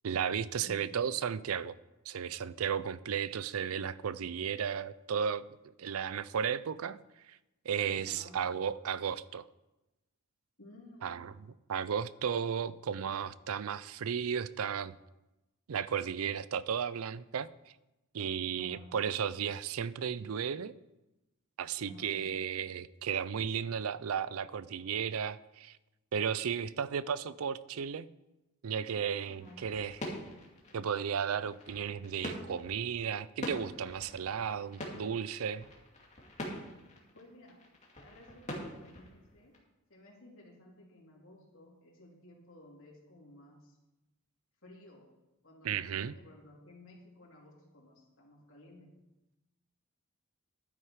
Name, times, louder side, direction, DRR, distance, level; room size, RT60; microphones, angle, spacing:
voice 1, 0.0-1.8 2.1-5.4 5.8-7.0 7.3-7.4 7.7-9.4 11.0-11.3 11.7-15.0 15.7-17.5 18.1-20.7 21.6-25.8 26.1-28.1 28.6-30.0 30.7-35.6 45.6-46.1, right 7 dB, 80° right, 18 dB, 0.5 m, -34 dB
voice 2, 0.6-0.9 8.0-8.4 10.6-11.2 18.6-18.9 21.9-22.2 29.3-29.6 37.1-37.6 38.0-39.6 39.9-43.8 44.6-45.1 45.4-48.9, left 1 dB, 65° left, -3 dB, 3.7 m, -55 dB
sound 1, 28.9-39.6, left 1 dB, 35° left, 2.4 m, -45 dB
12.0 x 9.4 x 4.8 m, 0.99 s
head